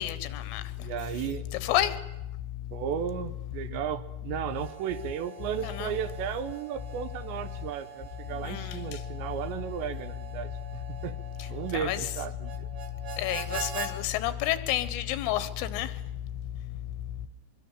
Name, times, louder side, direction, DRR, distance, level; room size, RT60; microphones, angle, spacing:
voice 1, 0.0-0.6 1.6-1.9 5.6-5.9 8.4-8.8 11.7-12.0 13.2-15.9, left 13 dB, 85° left, 3.8 m, -29 dB
voice 2, 0.8-1.4 2.7-11.2 11.5-12.7, right 9 dB, 75° right, 3.0 m, -35 dB
Harmonica, 4.4-13.9, right 7 dB, 45° right, 2.5 m, -43 dB
24.5 x 23.0 x 7.4 m
omnidirectional pair, 5.6 m